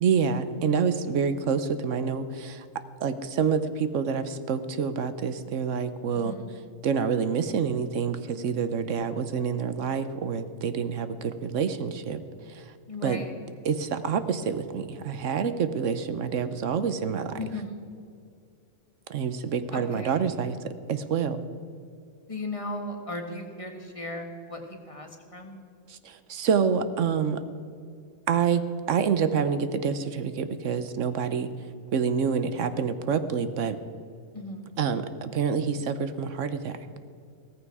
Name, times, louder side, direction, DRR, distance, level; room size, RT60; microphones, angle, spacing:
voice 1, 0.0-2.6 3.0-6.3 6.8-12.2 12.5-12.6 13.0-13.2 13.7-17.4 19.1-21.4 26.0-27.4 28.3-31.5 31.9-33.8 34.8-36.8, right 6 dB, 70° right, 11 dB, 1.1 m, -27 dB
voice 2, 6.1-6.6 12.9-13.3 17.4-17.9 19.7-20.2 22.3-25.6 34.3-34.8, left 1 dB, 25° left, 3 dB, 1.5 m, -37 dB
16.5 x 14.5 x 4.8 m, 2.4 s
omnidirectional pair, 1.3 m